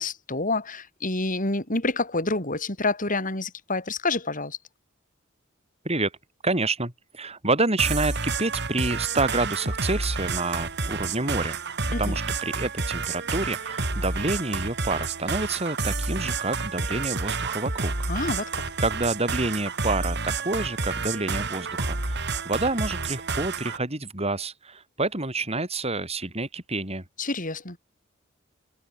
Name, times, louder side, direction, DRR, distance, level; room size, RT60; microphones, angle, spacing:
voice 1, 0.0-4.6 11.9-12.2 18.1-18.5 27.2-27.8, left 2 dB, 40° left, 6.4 m, -28 dB
voice 2, 6.4-11.6 12.0-17.9 18.8-27.0, right 2 dB, 30° right, 6.2 m, -28 dB
sound 1, 7.8-23.8, right 3 dB, 60° right, 5.7 m, -29 dB
head